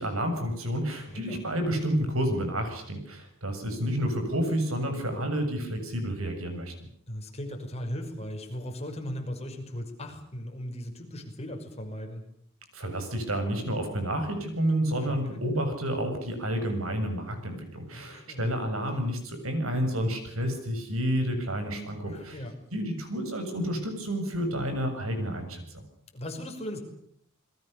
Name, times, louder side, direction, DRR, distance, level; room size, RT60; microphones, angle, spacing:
voice 1, 0.0-6.7 12.7-22.4 22.7-25.6, equal, 75° right, 6 dB, 7.2 m, -30 dB
voice 2, 1.1-1.4 7.1-12.2 15.0-15.4 17.9-18.5 22.0-22.5 26.1-26.8, equal, 30° left, 3 dB, 5.9 m, -38 dB
28.5 x 22.0 x 6.9 m, 0.68 s
head